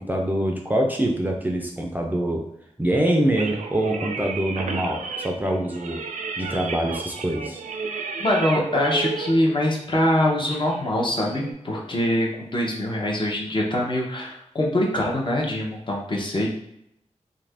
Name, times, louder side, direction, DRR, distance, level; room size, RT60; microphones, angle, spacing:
voice 1, 0.0-2.5 2.8-6.0 6.4-7.6, right 1 dB, 15° right, 1 dB, 0.4 m, -24 dB
sound 1, 3.4-11.5, right 4 dB, 90° right, 0.4 m, -33 dB
voice 2, 8.2-16.5, left 1 dB, 40° left, -1 dB, 0.7 m, -23 dB
2.7 x 2.5 x 3.3 m, 0.77 s
wide cardioid pair, 110°, 12 cm